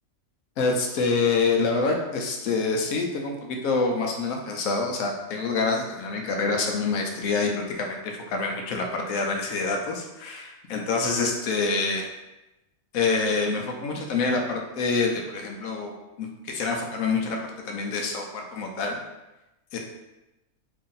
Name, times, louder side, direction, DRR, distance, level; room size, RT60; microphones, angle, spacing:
voice 1, 0.6-12.1 12.9-19.0 19.7-19.8, left 4 dB, 80° left, 2 dB, 1.0 m, -26 dB
3.0 x 2.6 x 3.8 m, 0.97 s
omnidirectional pair, 1.4 m